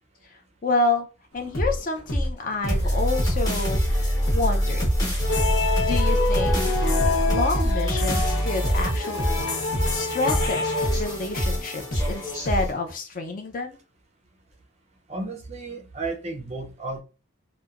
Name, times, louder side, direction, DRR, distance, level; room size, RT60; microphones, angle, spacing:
voice 1, 0.6-1.1 1.3-3.8 4.3-4.9 5.8-6.8 7.3-9.4 9.9-10.7 11.0-13.8, left 3 dB, 40° left, 0.4 m, -28 dB
sound 1, 1.4-8.3 8.6-12.9, equal, 60° left, 1.0 m, -27 dB
sound 2, 2.7-12.7, equal, 15° left, 0.9 m, -26 dB
sound 3, 5.2-11.5, left 3 dB, 90° left, 0.7 m, -27 dB
voice 2, 15.1-17.0, right 3 dB, 30° right, 0.4 m, -33 dB
2.8 x 2.1 x 2.3 m
head